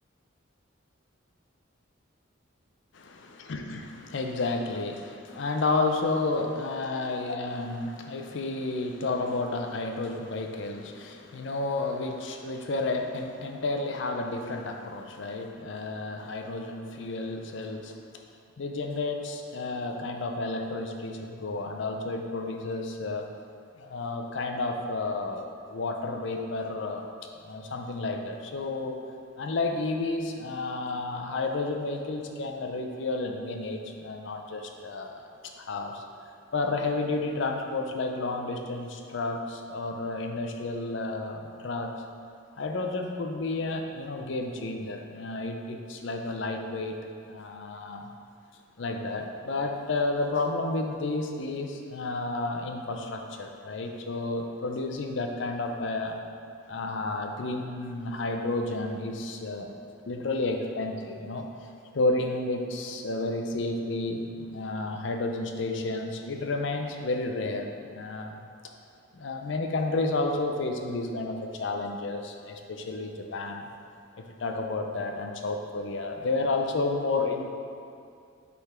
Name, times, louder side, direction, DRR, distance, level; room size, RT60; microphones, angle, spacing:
voice 1, 3.4-18.0 18.6-23.3 23.8-29.0 29.4-36.0 36.5-41.9 42.6-47.0 47.3-48.1 48.8-56.2 56.7-59.7 60.1-61.5 61.9-68.4 69.1-73.7 74.4-77.5, left 2 dB, 65° left, 3 dB, 0.5 m, -31 dB
5.8 x 4.0 x 4.3 m, 2.4 s
head